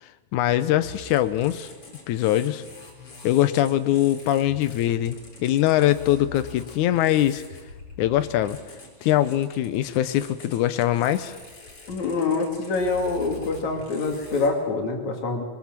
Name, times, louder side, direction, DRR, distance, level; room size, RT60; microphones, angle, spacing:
voice 1, 0.3-1.7 2.1-2.6 3.2-5.2 5.4-7.4 8.0-8.6 9.0-11.3, left 13 dB, 85° left, 12 dB, 2.3 m, -22 dB
sound 1, 0.8-14.5, left 3 dB, 50° left, 4.7 m, -44 dB
voice 2, 11.9-15.4, left 3 dB, 70° left, 2 dB, 4.0 m, -25 dB
23.5 x 20.5 x 7.5 m, 1.3 s
omnidirectional pair, 3.3 m